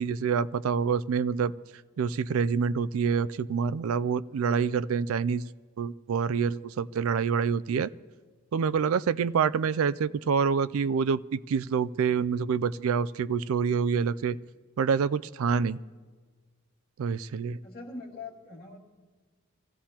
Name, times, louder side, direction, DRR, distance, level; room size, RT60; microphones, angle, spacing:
voice 1, 0.0-1.6 2.0-5.5 5.8-7.9 8.5-14.4 14.8-15.8 17.0-17.6, right 6 dB, 70° right, 17 dB, 0.3 m, -27 dB
voice 2, 17.6-18.8, left 3 dB, 45° left, -4 dB, 2.2 m, -42 dB
24.5 x 16.0 x 2.9 m, 1.4 s
head